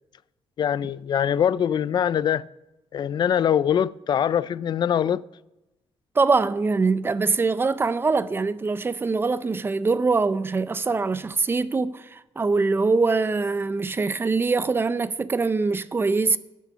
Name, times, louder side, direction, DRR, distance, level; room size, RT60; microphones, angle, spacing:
voice 1, 0.6-2.4 2.9-5.2, left 9 dB, 45° left, 0.3 m, -23 dB
voice 2, 6.2-16.4, right 4 dB, 20° right, 0.5 m, -23 dB
12.5 x 8.4 x 6.8 m
cardioid pair, 150°, 10 cm